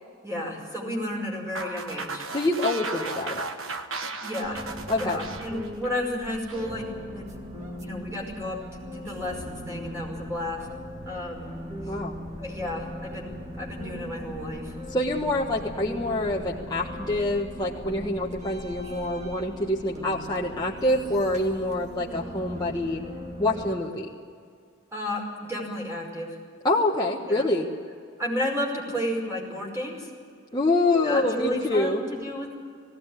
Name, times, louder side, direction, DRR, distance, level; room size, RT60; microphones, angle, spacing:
voice 1, 0.2-2.2 4.2-10.7 11.1-11.5 12.4-14.7 24.9-26.4 27.2-27.5 28.2-30.1 31.0-32.5, left 1 dB, 15° right, -1 dB, 5.5 m, -32 dB
sound 1, 1.5-6.7, right 3 dB, 80° right, 1.4 m, -35 dB
voice 2, 2.3-3.4 4.9-5.2 11.9-12.2 14.9-23.0 23.4-24.1 26.6-27.7 30.5-32.1, left 2 dB, 20° left, -4 dB, 1.4 m, -26 dB
sound 2, 4.4-23.7, equal, 35° right, 2.1 m, -39 dB
19.0 x 17.0 x 9.8 m, 2.2 s
head